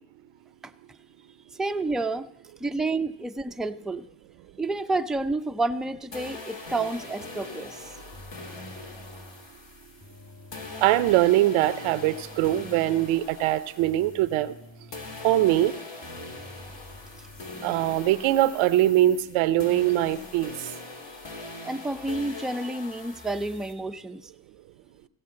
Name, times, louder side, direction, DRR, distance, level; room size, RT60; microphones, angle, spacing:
voice 1, 1.6-2.3 2.6-4.1 4.6-7.9 21.6-24.3, right 2 dB, ahead, 0.4 m, -29 dB
sound 1, 6.1-14.6 14.9-23.7, left 2 dB, 65° left, 2.7 m, -42 dB
sound 2, 8.1-9.5 10.0-11.3 11.8-13.3 13.8-15.7 16.2-17.5, left 1 dB, 35° left, 7.0 m, -49 dB
voice 2, 10.8-14.5 15.2-15.7 17.6-20.5, right 14 dB, 90° right, 0.7 m, -22 dB
sound 3, 17.2-19.2 19.9-20.8, left 1 dB, 85° left, 6.1 m, -54 dB
16.0 x 6.7 x 7.5 m
supercardioid pair, 55°, 47 cm